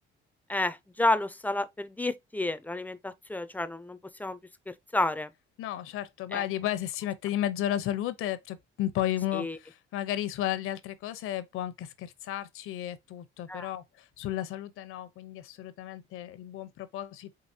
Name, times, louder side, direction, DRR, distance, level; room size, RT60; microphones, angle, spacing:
voice 1, 0.5-4.4 4.7-5.3 6.3-6.4 9.3-9.6 13.5-13.7, left 2 dB, 10° left, 0.3 m, -30 dB
voice 2, 5.6-17.3, left 12 dB, 85° left, 0.7 m, -33 dB
4.8 x 3.9 x 2.7 m
cardioid pair, 145°, 21 cm